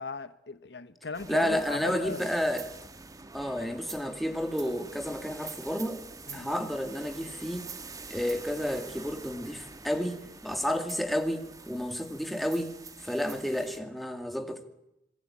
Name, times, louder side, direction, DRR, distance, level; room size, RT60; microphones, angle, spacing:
voice 1, 0.0-2.3 6.3-6.5, left 4 dB, 70° left, 1.1 m, -38 dB
sound 1, 1.1-13.8, right 4 dB, 20° right, 1.4 m, -46 dB
voice 2, 1.3-2.7 3.3-6.0 6.3-7.7 8.1-14.7, equal, ahead, 2.3 m, -31 dB
26.0 x 20.5 x 8.7 m
head